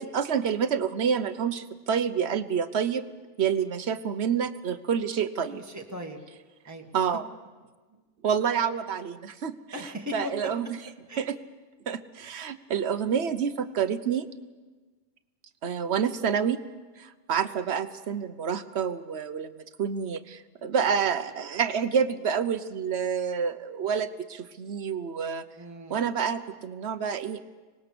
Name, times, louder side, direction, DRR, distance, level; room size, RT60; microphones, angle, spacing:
voice 1, 0.0-3.0 3.4-5.6 6.9-7.3 8.2-9.5 10.1-10.8 11.2-11.4 11.9-14.3 15.6-16.6 17.0-19.5 19.8-25.4 25.9-27.4, right 7 dB, 60° right, 12 dB, 1.1 m, -28 dB
voice 2, 5.5-6.2 6.7-6.9 7.9-8.0 9.7-10.3 11.1-11.3 25.6-26.0, left 1 dB, 15° right, 2 dB, 1.8 m, -38 dB
25.5 x 19.5 x 6.9 m, 1.3 s
omnidirectional pair, 1.3 m